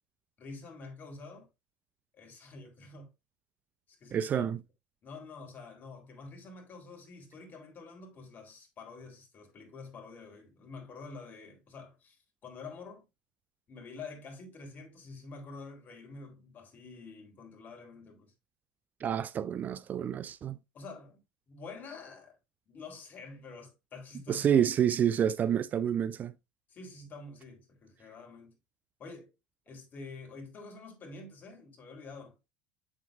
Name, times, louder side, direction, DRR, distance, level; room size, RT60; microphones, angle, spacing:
voice 1, 0.4-1.5 2.1-3.1 3.9-4.5 5.0-13.0 13.7-18.3 20.7-21.2 21.5-22.4 22.7-24.7 26.7-28.5 29.0-29.3 29.6-32.5, left 3 dB, 40° left, 3.5 m, -47 dB
voice 2, 4.1-4.6 19.0-20.6 24.3-26.3, right 9 dB, 40° right, 0.4 m, -28 dB
7.6 x 7.3 x 2.5 m
hypercardioid pair, 85°, 5 cm